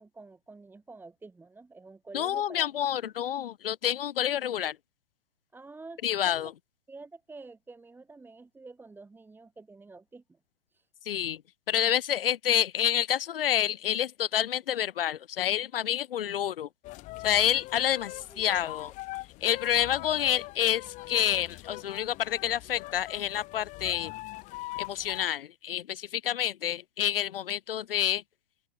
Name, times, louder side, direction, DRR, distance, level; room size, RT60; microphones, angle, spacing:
voice 1, 0.0-3.0 5.5-6.5 6.9-10.4 10.7-10.9 18.1-18.7, right 3 dB, 5° right, 2.3 m, -48 dB
voice 2, 2.1-4.7 6.0-6.5 11.1-11.4 11.7-16.7 17.2-18.9 19.4-24.1 24.8-28.2, left 10 dB, 70° left, 1.5 m, -28 dB
sound 1, 16.8-25.3, left 20 dB, 25° left, 0.9 m, -42 dB
open air
hypercardioid pair, 135°, 29 cm